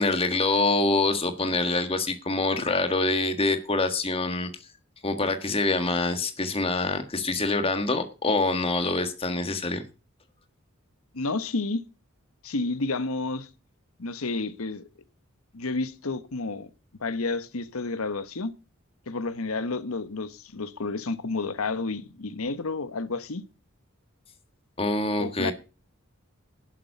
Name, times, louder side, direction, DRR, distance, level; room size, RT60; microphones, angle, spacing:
voice 1, 0.0-4.5 5.0-9.8 24.8-25.5, left 2 dB, 25° left, 1.6 m, -25 dB
voice 2, 11.1-11.8 12.4-13.5 14.0-14.8 15.5-16.7 17.0-18.5 19.1-23.4 25.2-25.5, left 3 dB, 85° left, 1.1 m, -30 dB
11.5 x 7.5 x 6.8 m
head